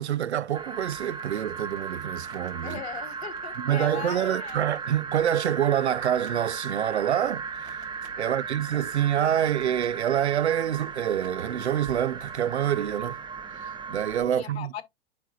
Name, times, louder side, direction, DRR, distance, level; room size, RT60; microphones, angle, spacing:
voice 1, 0.0-2.8 3.6-7.4 8.2-13.2 13.6-14.7, right 10 dB, 85° right, 0.6 m, -26 dB
sound 1, 0.5-14.2, right 5 dB, 15° right, 0.9 m, -36 dB
sound 2, 0.8-12.7 13.0-13.6, right 3 dB, 55° right, 2.6 m, -53 dB
voice 2, 2.6-4.7 8.2-8.5 14.3-14.8, left 9 dB, 70° left, 1.3 m, -39 dB
9.3 x 4.4 x 2.4 m
hypercardioid pair, 105°, 32 cm